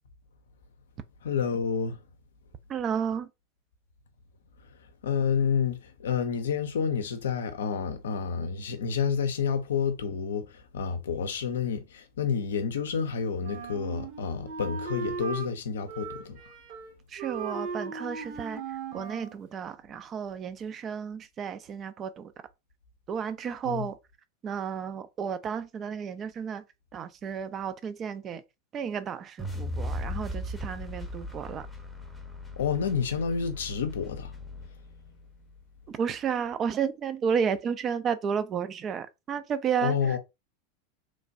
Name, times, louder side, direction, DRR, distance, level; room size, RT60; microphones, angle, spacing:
voice 1, 1.2-2.0 5.0-10.4 10.7-16.4 23.6-23.8 32.6-34.3 39.8-40.2, left 6 dB, 75° left, 0.5 m, -29 dB
voice 2, 2.7-3.3 17.1-22.3 23.1-24.0 24.4-26.6 26.9-28.4 28.7-31.7 35.9-40.2, right 7 dB, 35° right, 0.4 m, -32 dB
Wind instrument woodwind instrument, 13.4-15.5 15.9-16.9 17.2-19.4, right 5 dB, 60° right, 1.0 m, -37 dB
sound 1, 29.4-35.6, left 1 dB, ahead, 0.7 m, -38 dB
3.1 x 2.2 x 2.6 m
hypercardioid pair, 95°, 0 cm